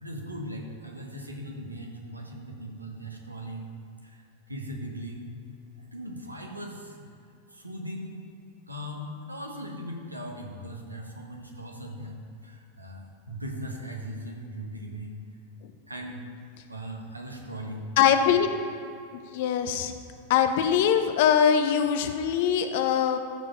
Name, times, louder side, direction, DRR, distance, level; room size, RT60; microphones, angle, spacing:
voice 1, 0.0-7.1 7.5-8.2 8.7-15.2 15.9-16.3 16.7-18.0 18.3-18.4, equal, 85° right, 1 dB, 1.4 m, -39 dB
voice 2, 18.0-18.5 19.3-19.9 20.3-23.2, left 8 dB, 50° left, 8 dB, 0.8 m, -22 dB
14.5 x 5.0 x 5.5 m, 2.5 s
figure-of-eight pair, 90°, 0 cm